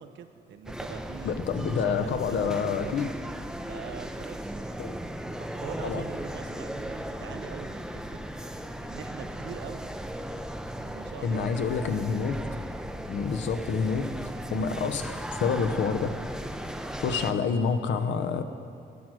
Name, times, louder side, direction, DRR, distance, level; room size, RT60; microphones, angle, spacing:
voice 1, 0.0-3.1 3.7-4.5 5.5-8.3 8.8-9.9 10.8-11.5 14.6-14.8, right 8 dB, 65° right, 10 dB, 0.6 m, -43 dB
sound 1, 0.6-17.3, right 1 dB, 5° right, 0.5 m, -37 dB
voice 2, 1.2-3.1 4.8-5.0 5.8-6.0 11.2-12.4 13.1-16.1 16.8-18.4, left 6 dB, 65° left, 9 dB, 0.7 m, -28 dB
12.0 x 6.1 x 6.3 m, 2.5 s
cardioid pair, 90°, 20 cm